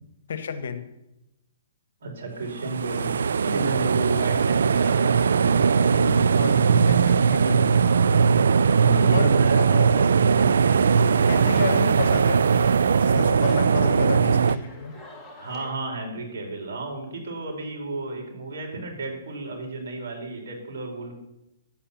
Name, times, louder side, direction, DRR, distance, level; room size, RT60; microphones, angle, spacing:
voice 1, 0.3-0.8 4.1-4.3 5.8-7.8 9.1-10.0 10.4-10.6 11.3-12.4 13.0-15.0, left 6 dB, 65° left, 11 dB, 1.4 m, -32 dB
voice 2, 2.0-3.1 3.4-6.3 7.7-8.2 8.6-10.4 13.7-14.0 15.4-21.1, right 2 dB, 65° right, 0 dB, 4.6 m, -33 dB
sound 1, 2.5-14.6, right 6 dB, 80° right, 0.5 m, -20 dB
sound 2, 10.7-15.7, left 2 dB, 10° left, 2.1 m, -45 dB
11.0 x 8.7 x 7.2 m, 0.90 s
hypercardioid pair, 150°, 0 cm